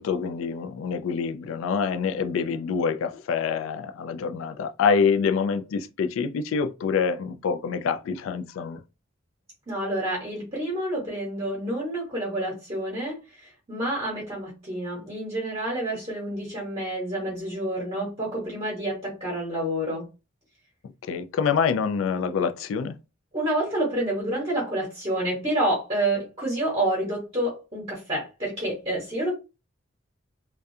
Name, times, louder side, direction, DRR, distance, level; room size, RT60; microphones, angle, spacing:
voice 1, 0.0-8.8 21.1-23.0, left 6 dB, 85° left, 0.3 m, -26 dB
voice 2, 9.7-20.1 23.3-29.4, right 1 dB, 30° right, 0.9 m, -28 dB
2.3 x 2.2 x 2.6 m
head